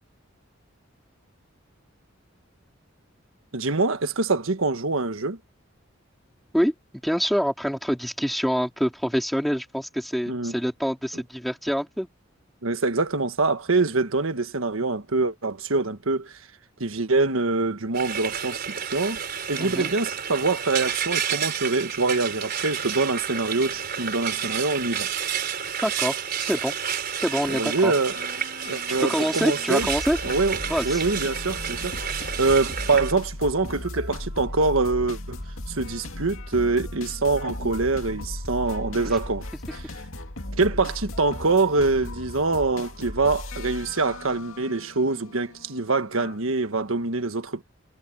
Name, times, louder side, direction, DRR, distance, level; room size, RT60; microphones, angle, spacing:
voice 1, 3.5-5.4 10.3-10.5 12.6-16.4 16.8-19.2 19.5-25.1 27.5-28.2 28.7-29.9 30.2-30.6 30.8-32.0 32.4-35.4 35.7-39.5 39.7-39.8 40.5-47.6, right 3 dB, 85° right, 1.5 m, -24 dB
voice 2, 7.0-12.1 19.6-19.9 25.8-26.8 27.2-27.9 29.0-30.2 30.7-31.0 39.1-39.2, equal, ahead, 4.6 m, -26 dB
Frying (food), 17.9-33.1, right 8 dB, 50° right, 4.7 m, -30 dB
sound 1, 27.2-46.4, left 1 dB, 85° left, 2.3 m, -37 dB
head